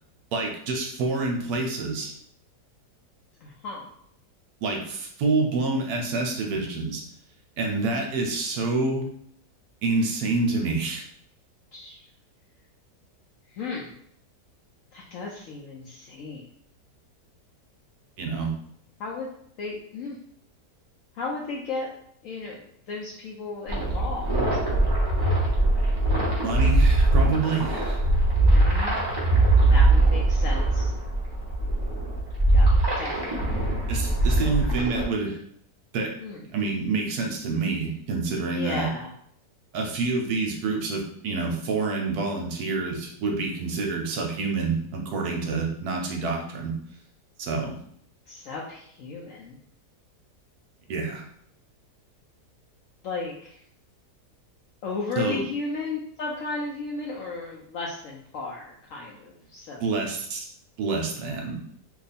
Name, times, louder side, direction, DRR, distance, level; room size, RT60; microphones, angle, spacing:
voice 1, 0.3-2.1 4.6-7.0 7.6-9.0 9.8-11.0 18.2-18.5 26.4-28.0 33.9-35.4 35.9-36.1 36.5-38.9 39.7-46.8 47.4-47.8 50.9-51.2 55.2-55.4 59.8-60.5 60.8-61.6, right 3 dB, 70° right, 1 dB, 1.1 m, -27 dB
voice 2, 3.4-3.9 11.7-12.0 13.5-13.9 14.9-16.5 19.0-19.3 19.6-20.2 21.1-21.9 22.2-24.4 28.4-29.0 29.7-30.9 32.5-33.7 33.9-34.5 36.2-36.5 38.4-39.1 48.3-49.6 53.0-53.6 54.8-60.0, left 3 dB, 70° left, -3 dB, 0.7 m, -35 dB
sound 1, 23.7-35.0, right 2 dB, 25° right, 0.6 m, -21 dB
2.8 x 2.3 x 4.0 m, 0.67 s
omnidirectional pair, 1.8 m